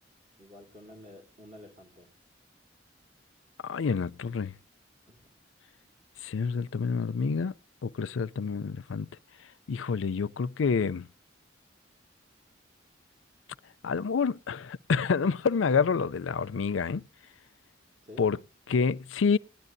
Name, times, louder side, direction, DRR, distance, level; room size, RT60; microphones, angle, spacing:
voice 1, 0.4-2.1 5.1-5.3 18.0-18.2, left 1 dB, 40° right, 2.3 m, -50 dB
voice 2, 3.6-4.5 6.2-7.5 7.8-9.1 9.7-11.1 13.8-17.0 18.2-18.4 18.7-19.4, left 5 dB, 90° left, 0.5 m, -28 dB
19.0 x 11.0 x 2.6 m
head